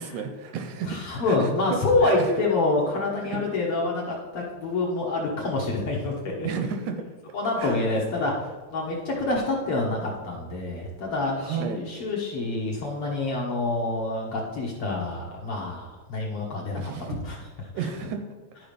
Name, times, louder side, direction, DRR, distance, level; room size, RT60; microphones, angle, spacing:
voice 1, 0.0-1.0 1.3-2.4 3.2-3.4 6.4-7.0 7.6-7.9 11.4-11.8 16.7-17.2 17.7-18.2, right 6 dB, 75° right, 6 dB, 2.0 m, -32 dB
voice 2, 0.8-6.5 7.3-16.9 17.2-17.4, left 2 dB, 60° left, -2 dB, 1.7 m, -27 dB
11.5 x 4.7 x 5.2 m, 1.4 s
omnidirectional pair, 3.7 m